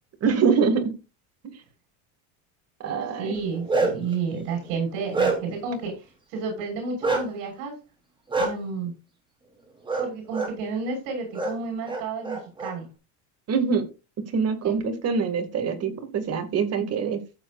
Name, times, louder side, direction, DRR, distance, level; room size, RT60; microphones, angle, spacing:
voice 1, 0.2-0.9 2.8-3.3 13.5-13.9 14.3-17.2, right 5 dB, 40° right, 7 dB, 2.6 m, -24 dB
voice 2, 3.2-7.8 8.4-8.9 10.0-12.9 14.6-14.8, right 4 dB, 70° right, 1 dB, 6.0 m, -31 dB
Bark, 3.4-4.1 4.6-5.7 7.0-7.2 8.3-8.5 9.9-10.1 10.3-10.5 11.3-11.5 11.9-12.7, right 3 dB, 10° right, 3.8 m, -25 dB
15.0 x 7.5 x 2.6 m, 0.29 s
cardioid pair, 135°, 40 cm